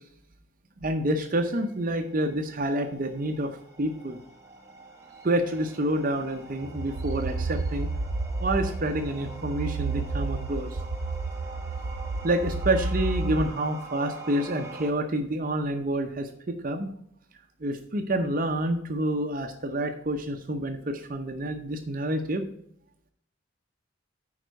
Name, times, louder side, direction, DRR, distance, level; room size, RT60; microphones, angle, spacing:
voice 1, 0.8-4.2 5.2-7.9 8.4-10.8 12.2-16.9 17.6-22.5, right 1 dB, 40° right, 6 dB, 0.6 m, -28 dB
sound 1, 1.7-14.9, right 2 dB, 15° right, 1.2 m, -45 dB
sound 2, 6.6-13.4, right 3 dB, 85° right, 0.5 m, -31 dB
9.7 x 4.5 x 5.1 m, 0.69 s
head